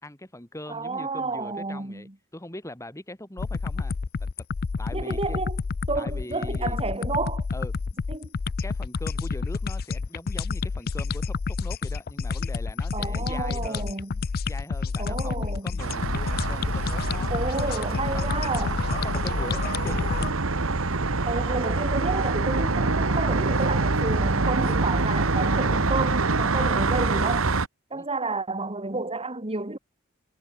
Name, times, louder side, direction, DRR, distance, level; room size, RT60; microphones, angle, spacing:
voice 1, 0.0-3.9 4.8-5.4 6.0-6.8 7.5-7.7 8.6-13.9 14.5-17.3 17.7-17.8 18.1-18.2 18.9-20.0 27.9-28.1, left 1 dB, 15° left, 4.0 m, -41 dB
voice 2, 0.7-2.1 4.9-5.6 5.9-7.5 8.1-8.3 12.9-14.2 15.0-15.8 17.3-18.8 21.3-27.5 27.9-29.8, right 3 dB, 25° right, 2.4 m, -31 dB
sound 1, 3.4-20.3, left 4 dB, 45° left, 0.5 m, -29 dB
sound 2, 15.8-27.7, right 3 dB, 70° right, 1.5 m, -25 dB
head